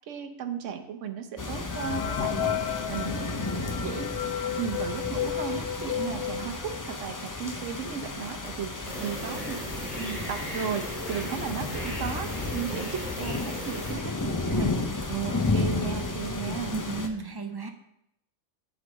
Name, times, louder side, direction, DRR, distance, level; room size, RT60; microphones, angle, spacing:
voice 1, 0.1-4.1 4.5-9.6 10.0-14.7 15.1-16.7, right 8 dB, 80° right, 7 dB, 1.1 m, -35 dB
sound 1, 1.4-17.1, left 3 dB, 25° left, 0.4 m, -33 dB
sound 2, 1.7-7.1 7.6-7.7 7.9-8.0 8.7-8.8 9.2-9.5, left 11 dB, 70° left, 0.8 m, -33 dB
sound 3, 8.8-13.9, equal, ahead, 3.2 m, -37 dB
voice 2, 16.7-17.7, right 3 dB, 30° right, 5 dB, 0.5 m, -33 dB
8.1 x 3.9 x 6.1 m, 0.81 s
omnidirectional pair, 1.2 m